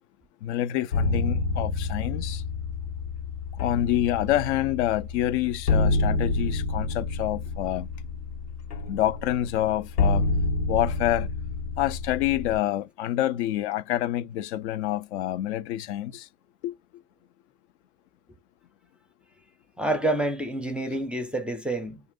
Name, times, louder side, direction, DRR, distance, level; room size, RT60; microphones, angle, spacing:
voice 1, 0.4-2.4 3.6-7.9 8.9-10.2 10.7-11.3 11.8-16.3 16.6-16.7, left 13 dB, 50° left, 0.5 m, -27 dB
sound 1, 0.9-12.6, left 3 dB, 90° left, 1.0 m, -28 dB
voice 2, 19.8-22.0, right 1 dB, ahead, 0.5 m, -28 dB
2.5 x 2.5 x 3.6 m
hypercardioid pair, 100°, 46 cm